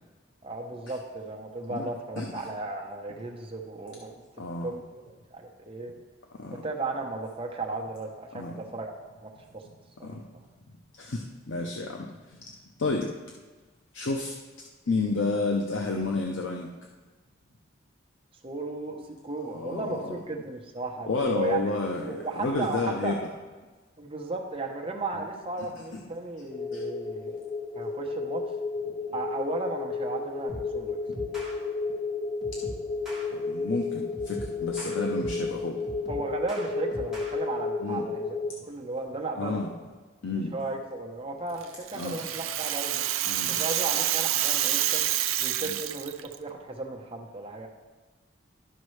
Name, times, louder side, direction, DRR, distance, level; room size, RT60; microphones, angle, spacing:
voice 1, 0.4-4.2 4.6-6.0 6.6-8.9 9.2-9.6 10.0-10.2 18.4-23.2 24.0-27.4 27.7-28.4 29.1-31.0 36.1-39.6 40.3-43.0 43.5-45.1 45.4-46.1 46.4-47.7, right 3 dB, 25° right, 1 dB, 0.8 m, -35 dB
voice 2, 4.4-4.8 6.4-6.6 8.3-8.5 10.0-10.2 11.0-12.1 12.8-13.1 13.9-14.3 14.9-16.7 19.5-20.0 21.1-23.2 26.7-26.8 33.3-35.8 37.8-38.1 39.3-39.7 40.2-40.5 41.9-42.2 43.3-43.6 45.6-45.7, left 3 dB, 75° left, 1 dB, 0.6 m, -30 dB
sound 1, 26.5-38.5, left 4 dB, 35° left, 0.4 m, -32 dB
sound 2, 30.5-30.8 31.1-31.6 32.4-33.3 34.1-35.5 35.8-37.3, right 1 dB, ahead, 1.5 m, -41 dB
Rattle (instrument), 41.6-46.3, right 12 dB, 85° right, 0.4 m, -28 dB
12.0 x 5.2 x 3.2 m, 1.3 s
head